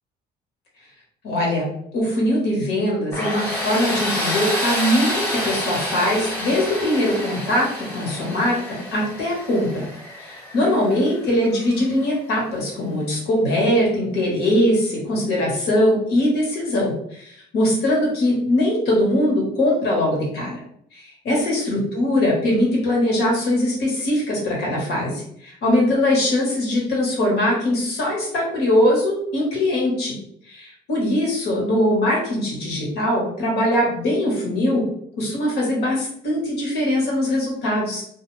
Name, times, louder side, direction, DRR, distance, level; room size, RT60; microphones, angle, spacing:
voice 1, 1.2-9.9 10.2-20.6 20.9-30.2 30.5-34.8 35.2-38.0, left 1 dB, 80° left, -3 dB, 1.2 m, -21 dB
Tools, 3.1-11.9, left 1 dB, 10° left, 1.1 m, -28 dB
2.4 x 2.2 x 3.1 m, 0.69 s
cardioid pair, 110°, 17 cm